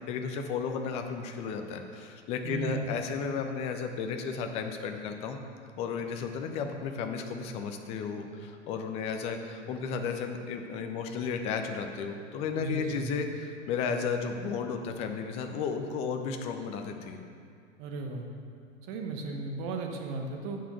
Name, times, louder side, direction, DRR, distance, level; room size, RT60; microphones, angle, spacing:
voice 1, 0.1-5.4 5.8-17.2, left 5 dB, 15° left, 5 dB, 0.5 m, -33 dB
voice 2, 2.4-2.9 12.6-13.1 17.8-18.2 18.8-20.6, right 3 dB, 30° right, 3 dB, 1.0 m, -35 dB
7.2 x 6.0 x 6.9 m, 2.3 s
figure-of-eight pair, 100°, 37 cm